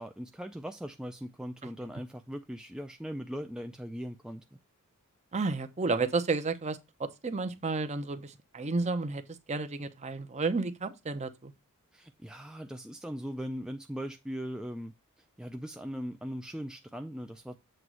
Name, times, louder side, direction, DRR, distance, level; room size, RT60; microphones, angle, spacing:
voice 1, 0.0-4.4 11.9-17.6, equal, 5° right, 0.3 m, -40 dB
voice 2, 5.3-9.2 9.5-11.5, right 3 dB, 30° right, 0.7 m, -32 dB
7.7 x 3.0 x 6.0 m
head